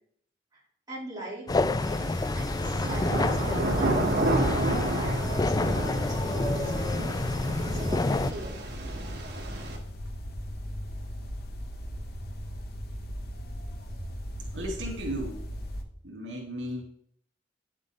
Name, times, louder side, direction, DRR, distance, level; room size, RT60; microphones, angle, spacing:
voice 1, 0.9-2.1 2.4-4.2 4.5-8.6, right 1 dB, 20° right, -6 dB, 3.5 m, -41 dB
sound 1, 1.5-8.3, left 2 dB, 20° left, 0.4 m, -29 dB
sound 2, 1.8-9.8, right 1 dB, 65° right, 1.8 m, -31 dB
sound 3, 2.4-15.8, equal, 60° left, 1.1 m, -38 dB
voice 2, 14.5-15.4 16.0-16.8, right 1 dB, 85° right, -1 dB, 3.1 m, -35 dB
9.9 x 7.4 x 3.8 m, 0.65 s
head